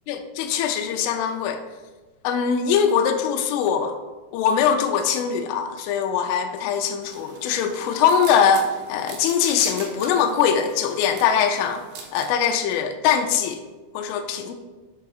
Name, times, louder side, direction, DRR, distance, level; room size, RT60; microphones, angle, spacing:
voice 1, 0.1-1.6 2.2-4.0 4.3-11.8 12.1-13.6 13.9-14.6, left 7 dB, 85° left, 6 dB, 3.0 m, -22 dB
sound 1, 7.0-12.3, right 5 dB, 70° right, 2.3 m, -41 dB
11.0 x 6.0 x 2.4 m, 1.2 s
omnidirectional pair, 5.8 m